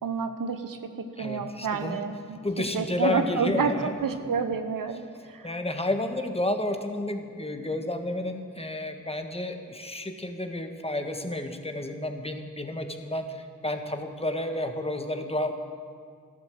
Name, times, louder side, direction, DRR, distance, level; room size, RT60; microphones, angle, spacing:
voice 1, 0.0-2.4 2.7-5.5, right 5 dB, 90° right, 8 dB, 1.0 m, -29 dB
voice 2, 1.2-2.0 2.4-4.0 5.4-15.5, left 1 dB, 20° left, 5 dB, 1.5 m, -31 dB
13.5 x 12.0 x 7.7 m, 2.2 s
cardioid pair, 55°, 32 cm